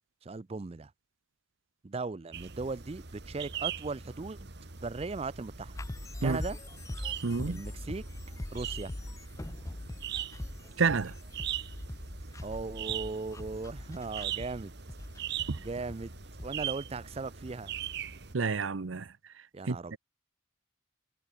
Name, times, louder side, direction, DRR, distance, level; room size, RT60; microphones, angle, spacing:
voice 1, 0.2-0.9 1.8-4.5 4.8-5.7 6.2-6.6 7.5-8.0 8.5-8.9 12.4-14.7 15.6-16.1 16.4-17.7 19.5-20.0, right 3 dB, 30° right, 0.5 m, -38 dB
sound 1, 2.3-18.3, right 9 dB, 60° right, 1.8 m, -41 dB
sound 2, 5.8-16.7, left 1 dB, 15° left, 0.6 m, -42 dB
voice 2, 7.2-7.6 10.8-11.1 15.5-15.6 18.3-19.1 19.7-20.0, right 4 dB, 90° right, 0.7 m, -29 dB
head